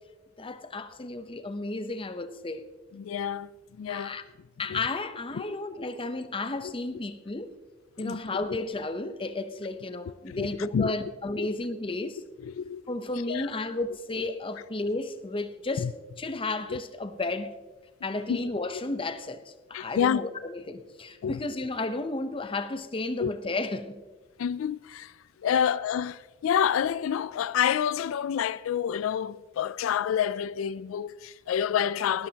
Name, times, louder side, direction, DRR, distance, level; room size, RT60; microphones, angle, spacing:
voice 1, 0.4-2.7 3.9-4.2 4.6-7.5 8.0-12.2 12.9-15.8 16.2-17.5 18.0-24.0, left 2 dB, 25° left, 0.7 m, -33 dB
voice 2, 2.9-4.2 4.7-4.8 5.3-5.6 6.6-6.7 8.0-8.2 8.5-8.6 10.1-10.9 11.4-11.6 11.9-12.1 12.4-12.9 13.3-13.5 15.8-15.9 16.7-16.8 18.3-18.4 19.7-20.3 21.2-21.4 23.2-23.3 24.4-32.3, left 8 dB, 85° left, 0.3 m, -29 dB
18.5 x 13.5 x 2.9 m
head